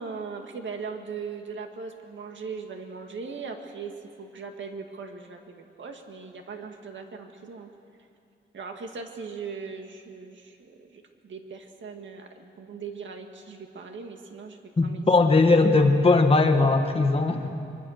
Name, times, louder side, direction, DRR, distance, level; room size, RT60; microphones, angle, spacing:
voice 1, 0.0-7.7 8.5-15.1, right 5 dB, 80° right, 4 dB, 2.0 m, -39 dB
voice 2, 14.8-17.5, left 3 dB, 30° left, 5 dB, 1.5 m, -19 dB
24.5 x 23.0 x 6.6 m, 2.5 s
wide cardioid pair, 160°, 19 cm